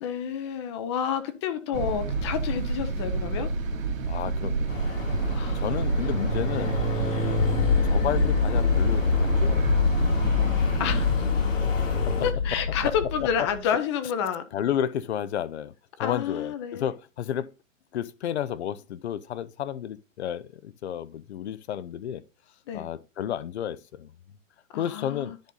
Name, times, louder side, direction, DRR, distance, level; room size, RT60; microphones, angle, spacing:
voice 1, 0.0-3.5 5.3-5.6 6.0-6.1 6.6-6.7 7.2-7.4 10.8-11.3 12.2-14.5 16.0-16.9 22.7-22.9 24.7-25.4, left 8 dB, 20° left, 0.7 m, -30 dB
sound 1, 1.7-11.1, right 3 dB, 85° right, 2.1 m, -29 dB
voice 2, 4.1-4.8 5.5-6.8 7.8-9.8 12.8-12.9 14.5-17.5 17.9-22.2 22.7-24.1 24.8-25.3, left 10 dB, 55° left, 0.8 m, -31 dB
sound 2, 4.7-12.3, equal, 75° left, 4.5 m, -32 dB
sound 3, 7.4-13.6, left 6 dB, 40° left, 1.3 m, -25 dB
10.5 x 4.1 x 3.9 m
hypercardioid pair, 160°, 39 cm